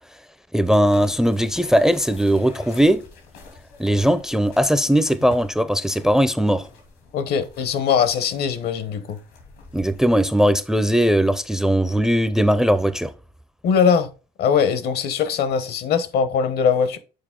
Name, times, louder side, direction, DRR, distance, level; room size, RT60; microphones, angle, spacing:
voice 1, 0.5-3.0 3.8-6.7 9.7-13.1, equal, 5° right, 0.4 m, -19 dB
sound 1, 0.6-10.3, left 3 dB, 90° left, 2.7 m, -45 dB
voice 2, 7.1-9.2 13.6-14.1 14.4-17.0, left 6 dB, 70° left, 0.9 m, -21 dB
6.8 x 4.3 x 3.7 m
cardioid pair, 110°, 17 cm